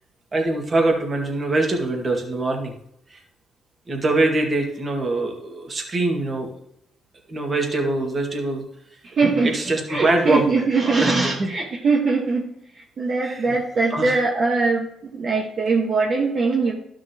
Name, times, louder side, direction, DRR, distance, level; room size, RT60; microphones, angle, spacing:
voice 1, 0.3-2.7 3.1-3.2 3.9-6.5 7.3-8.6 9.4-11.1 11.4-11.5 13.2-13.5 13.9-14.2, right 2 dB, 35° right, 2 dB, 2.0 m, -23 dB
voice 2, 9.0-9.5 9.9-12.5 12.8-16.7, right 4 dB, 50° right, -2 dB, 1.5 m, -21 dB
12.5 x 6.1 x 3.0 m, 0.76 s
cardioid pair, 90°, 0 cm